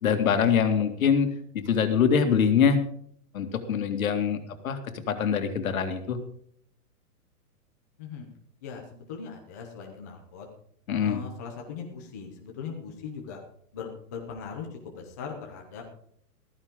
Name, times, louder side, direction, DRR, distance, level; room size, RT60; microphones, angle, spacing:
voice 1, 0.0-1.3 1.5-2.8 3.3-4.4 4.6-4.8 5.1-6.2 10.9-11.2, left 7 dB, 60° left, 7 dB, 2.2 m, -23 dB
voice 2, 8.6-10.5 11.0-13.4 13.7-15.8, left 6 dB, 10° left, 1 dB, 0.6 m, -39 dB
15.0 x 14.5 x 3.7 m, 0.63 s
hypercardioid pair, 175°, 47 cm